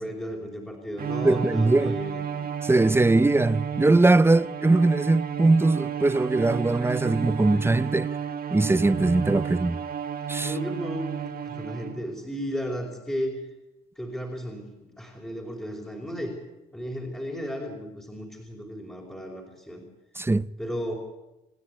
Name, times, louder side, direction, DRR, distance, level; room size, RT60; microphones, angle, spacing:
voice 1, 0.0-2.5 10.4-13.4 13.9-16.3 16.7-19.8 20.6-20.9, equal, 5° left, 5.0 m, -34 dB
Bowed string instrument, 1.0-12.2, right 8 dB, 55° right, 1.9 m, -32 dB
voice 2, 1.2-2.0 2.6-8.1 8.5-9.8 10.3-10.5 20.2-20.5, right 2 dB, 15° right, 0.7 m, -21 dB
28.0 x 9.8 x 9.9 m
cardioid pair, 75°, 18 cm